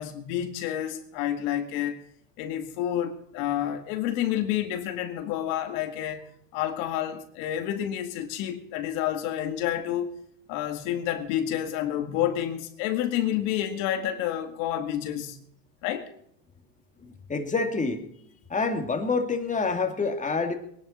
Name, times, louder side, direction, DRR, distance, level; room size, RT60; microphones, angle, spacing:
voice 1, 0.0-2.0 2.4-10.1 10.5-15.4 15.8-16.1, left 11 dB, 60° left, 2.1 m, -29 dB
voice 2, 17.3-18.1 18.5-20.6, left 4 dB, 15° left, 2.3 m, -27 dB
22.0 x 11.0 x 4.3 m
supercardioid pair, 110°, 48 cm